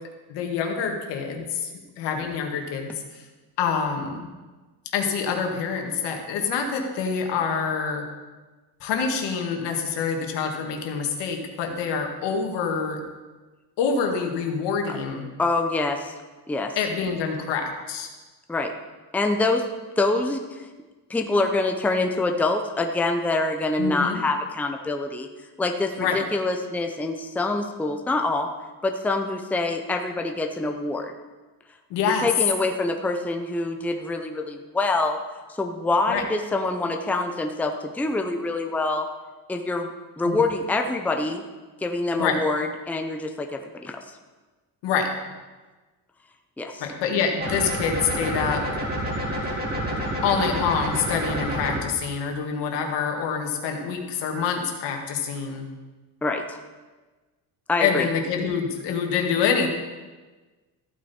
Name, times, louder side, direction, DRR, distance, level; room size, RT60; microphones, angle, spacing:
voice 1, 0.3-3.2 3.6-4.3 4.9-8.1 8.8-13.0 13.8-15.3 16.8-18.1 23.8-24.2 26.0-26.2 31.9-32.3 36.1-36.2 40.2-40.5 42.2-42.4 44.8-45.1 46.8-48.7 50.2-55.7 57.8-59.7, left 6 dB, 85° left, 3 dB, 2.0 m, -26 dB
voice 2, 15.4-16.1 16.5-16.8 18.5-18.7 19.1-19.7 20.0-20.7 21.1-25.3 25.6-28.5 28.8-31.1 32.0-35.2 35.6-39.1 39.5-39.9 40.2-41.4 41.8-44.0 46.6-46.8 56.2-56.6 57.7-58.1, left 2 dB, 5° left, 4 dB, 0.6 m, -25 dB
sound 1, 47.4-51.8, equal, 25° right, 2.3 m, -28 dB
14.5 x 9.1 x 4.3 m, 1.3 s
cardioid pair, 160°, 41 cm